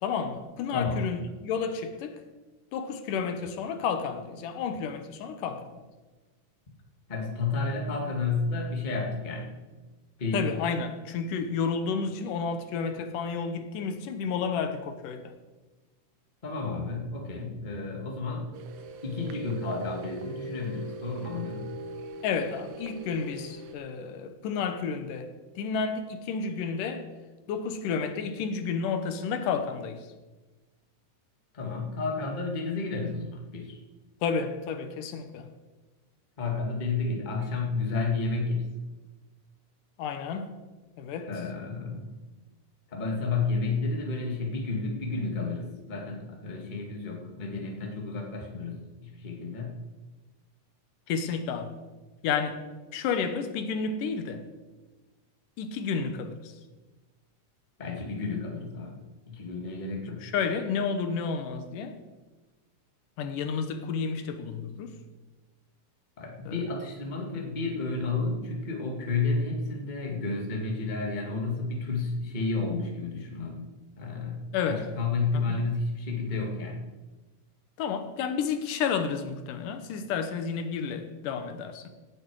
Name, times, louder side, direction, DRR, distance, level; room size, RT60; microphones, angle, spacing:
voice 1, 0.0-2.2 2.7-5.8 10.3-15.3 22.2-25.3 25.6-27.1 27.5-30.1 34.2-35.5 40.0-40.5 41.0-41.3 51.1-51.8 52.2-52.6 52.9-54.5 55.6-56.5 60.2-62.0 63.2-65.0 66.5-66.6 74.5-74.9 75.3-75.7 77.8-81.9, left 6 dB, 85° left, 2.6 m, -31 dB
voice 2, 0.7-1.0 7.1-9.5 10.2-10.5 16.4-18.5 19.0-21.7 31.5-33.8 36.4-38.7 41.3-42.1 42.9-49.8 57.8-59.0 59.3-60.2 66.2-74.4 74.7-76.8, left 3 dB, 20° left, 1.4 m, -31 dB
sound 1, 18.5-23.7, right 2 dB, 80° right, 1.2 m, -41 dB
18.0 x 8.7 x 4.8 m
omnidirectional pair, 3.7 m